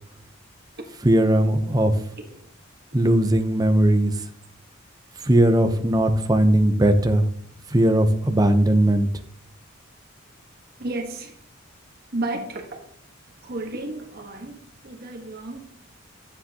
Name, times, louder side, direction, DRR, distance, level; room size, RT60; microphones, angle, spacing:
voice 1, 1.0-1.9 2.9-4.2 5.2-7.3 7.7-9.1, right 1 dB, 20° right, 0.7 m, -18 dB
voice 2, 10.8-11.4 12.1-12.9 13.4-15.6, right 2 dB, 50° right, 1.3 m, -33 dB
10.5 x 7.6 x 2.9 m
head